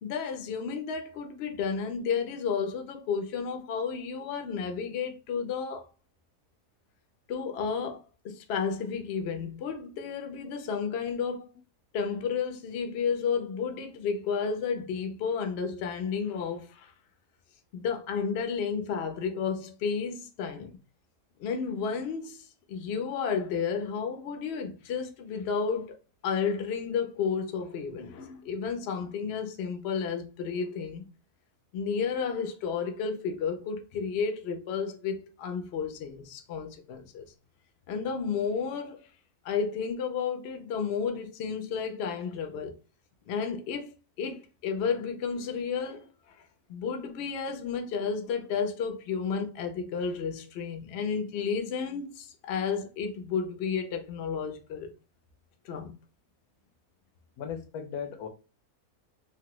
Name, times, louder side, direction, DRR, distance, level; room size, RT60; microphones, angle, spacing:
voice 1, 0.0-5.9 7.3-11.5 11.9-16.9 17.7-20.8 21.4-26.0 26.2-31.1 31.7-37.3 37.9-39.0 39.4-42.8 43.3-43.9 44.2-46.1 46.7-54.9 55.6-55.9, left 6 dB, 65° left, 0.6 m, -32 dB
voice 2, 57.4-58.3, left 7 dB, 80° left, 1.1 m, -37 dB
3.2 x 2.1 x 2.9 m
omnidirectional pair, 1.7 m